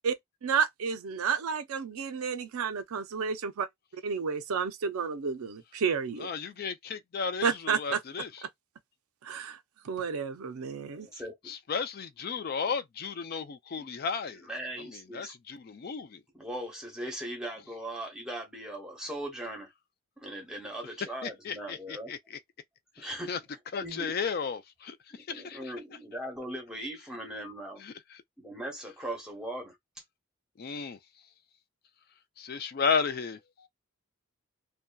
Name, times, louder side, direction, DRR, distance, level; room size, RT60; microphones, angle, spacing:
voice 1, 0.4-3.7 4.0-6.3 7.4-8.0 9.2-9.6 9.9-11.1, right 6 dB, 80° right, 0.5 m, -31 dB
voice 2, 6.2-8.4 11.5-14.5 14.8-16.2 21.2-22.4 23.0-23.4 23.7-25.0 25.3-25.7 27.8-27.9 30.6-31.0 32.4-33.4, left 5 dB, 45° left, 0.3 m, -34 dB
voice 3, 10.9-11.5 14.5-15.3 16.4-19.7 20.2-22.1 23.0-23.3 23.8-24.1 25.1-27.8 28.4-29.7, right 1 dB, 5° right, 0.8 m, -39 dB
2.6 x 2.2 x 2.2 m
head